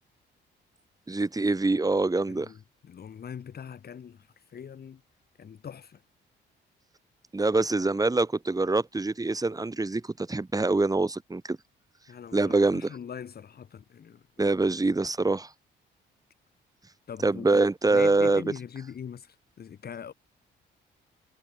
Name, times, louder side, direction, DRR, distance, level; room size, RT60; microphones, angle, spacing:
voice 1, 1.1-2.5 7.3-11.6 12.3-13.0 14.4-15.5 17.2-18.4, right 3 dB, 20° right, 4.2 m, -25 dB
voice 2, 2.8-5.0 5.4-6.0 12.1-14.2 17.1-20.1, left 8 dB, 50° left, 4.0 m, -42 dB
cardioid pair, 90°, 20 cm